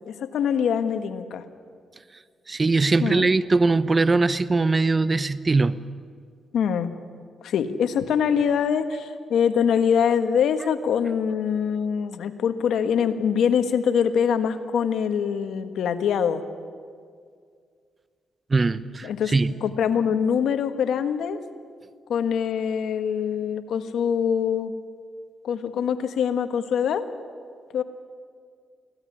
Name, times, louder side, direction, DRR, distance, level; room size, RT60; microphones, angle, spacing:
voice 1, 0.1-1.4 3.0-3.3 6.5-6.9 7.4-16.4 19.0-19.3 19.6-21.4 22.1-24.7 25.4-27.0 27.7-27.8, left 7 dB, 80° left, 1.4 m, -24 dB
voice 2, 2.5-5.9 18.5-19.6, right 3 dB, 30° right, 0.8 m, -21 dB
23.5 x 17.0 x 9.9 m
cardioid pair, 80°, 0 cm